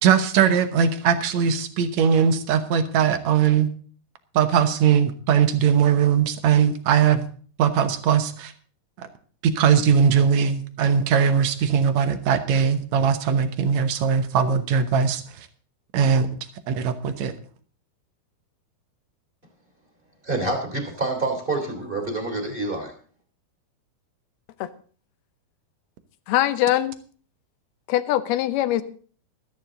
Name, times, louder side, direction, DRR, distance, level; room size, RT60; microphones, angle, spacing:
voice 1, 0.0-3.7 4.3-7.3 7.6-8.5 9.0-9.1 9.5-15.5 15.9-16.3 16.7-17.3, right 7 dB, 70° right, 10 dB, 1.7 m, -20 dB
voice 2, 20.2-22.9, right 2 dB, 15° right, 4 dB, 2.7 m, -27 dB
voice 3, 26.3-27.0 27.9-28.8, left 14 dB, 80° left, 13 dB, 2.7 m, -22 dB
14.5 x 13.5 x 3.8 m, 0.43 s
omnidirectional pair, 4.6 m